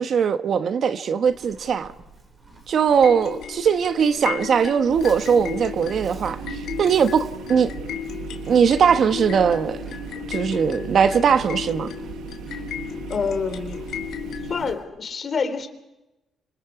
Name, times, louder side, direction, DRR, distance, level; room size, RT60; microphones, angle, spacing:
voice 1, 0.0-1.9 2.7-7.7 8.5-9.8 10.3-11.9, right 7 dB, 60° right, 1.1 m, -20 dB
Livestock farm animals working animals, 1.2-14.8, right 3 dB, 40° right, 7.4 m, -49 dB
sound 1, 3.0-14.7, left 9 dB, 75° left, 2.9 m, -35 dB
sound 2, 4.9-14.8, right 10 dB, 85° right, 1.1 m, -38 dB
voice 2, 13.1-13.9 14.5-15.7, left 5 dB, 45° left, 3.1 m, -27 dB
26.5 x 25.5 x 5.0 m
cardioid pair, 90°, 0 cm